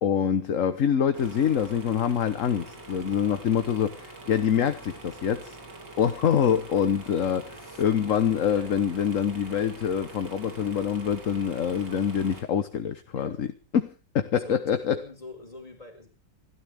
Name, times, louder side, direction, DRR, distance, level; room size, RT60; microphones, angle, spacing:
voice 1, 0.0-5.6 6.0-13.5 13.7-15.0, left 8 dB, 50° left, 1.2 m, -25 dB
sound 1, 1.1-12.4, right 2 dB, 65° right, 4.0 m, -45 dB
voice 2, 7.5-7.8 8.5-8.7 13.1-13.4 14.4-16.1, left 2 dB, 20° left, 4.8 m, -44 dB
28.0 x 13.0 x 3.5 m
omnidirectional pair, 2.0 m